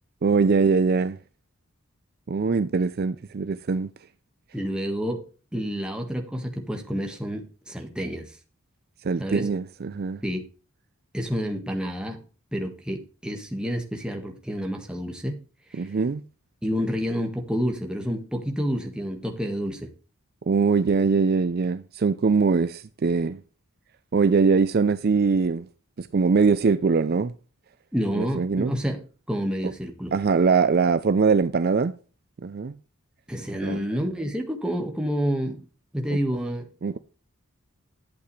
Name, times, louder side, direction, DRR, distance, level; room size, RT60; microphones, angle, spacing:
voice 1, 0.2-1.2 2.3-3.9 9.0-10.2 15.7-16.2 20.5-23.4 24.1-25.7 26.0-27.3 28.1-28.7 30.1-31.9 32.4-32.7 33.6-33.9 36.8-37.0, right 5 dB, 45° right, 0.4 m, -22 dB
voice 2, 4.5-5.2 5.5-8.3 9.2-9.5 10.2-10.4 11.1-12.2 12.5-15.4 15.7-15.9 16.6-19.9 27.9-29.0 29.3-30.1 33.3-35.6 35.9-36.7, equal, 5° right, 1.5 m, -29 dB
11.5 x 8.2 x 3.2 m
head